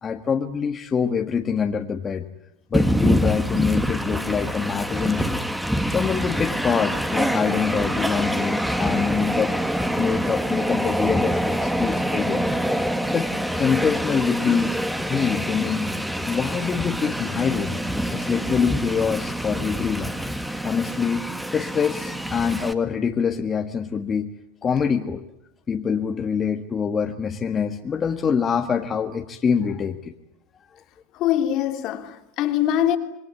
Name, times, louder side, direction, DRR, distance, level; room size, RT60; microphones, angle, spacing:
voice 1, 0.0-2.3 2.7-5.4 5.9-9.5 10.0-12.4 12.7-12.8 13.1-13.3 13.6-14.7 15.0-15.9 16.3-17.8 18.1-20.1 20.6-21.3 21.5-24.3 24.6-25.2 25.7-30.1, left 6 dB, 25° left, 1.7 m, -25 dB
Train, 2.7-22.7, equal, 5° right, 1.9 m, -25 dB
voice 2, 31.1-33.0, left 11 dB, 55° left, 3.2 m, -23 dB
27.0 x 20.5 x 9.5 m
supercardioid pair, 110°, 0 cm